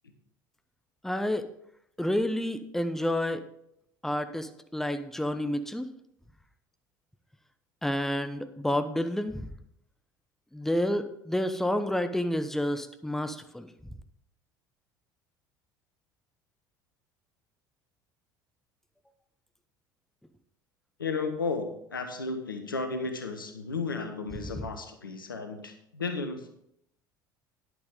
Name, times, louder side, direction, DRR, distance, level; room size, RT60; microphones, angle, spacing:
voice 1, 1.0-1.5 2.0-3.5 4.0-5.9 7.8-9.5 10.5-13.7 24.6-24.7, left 1 dB, 5° left, 9 dB, 0.9 m, -29 dB
voice 2, 21.0-26.5, left 4 dB, 85° left, 7 dB, 1.1 m, -34 dB
10.5 x 9.1 x 3.7 m, 0.75 s
figure-of-eight pair, 65°, 11 cm